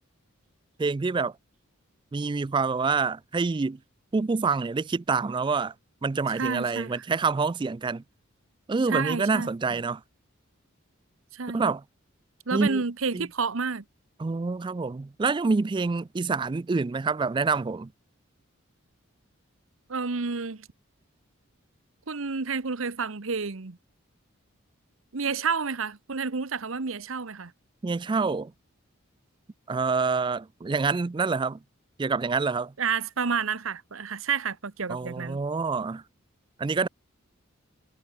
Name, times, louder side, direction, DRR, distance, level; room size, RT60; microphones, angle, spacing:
voice 1, 0.8-1.4 2.1-3.8 4.1-5.7 6.0-8.0 8.7-10.0 11.5-11.8 12.5-12.8 13.1-13.3 14.2-17.9 27.8-28.5 29.7-31.6 32.0-32.7 34.9-36.0 36.6-36.9, right 4 dB, 20° right, 0.3 m, -27 dB
voice 2, 6.3-6.9 8.9-9.5 11.3-11.6 12.5-13.8 19.9-20.7 22.1-23.8 25.1-27.5 32.8-35.4, right 5 dB, 70° right, 1.0 m, -30 dB
head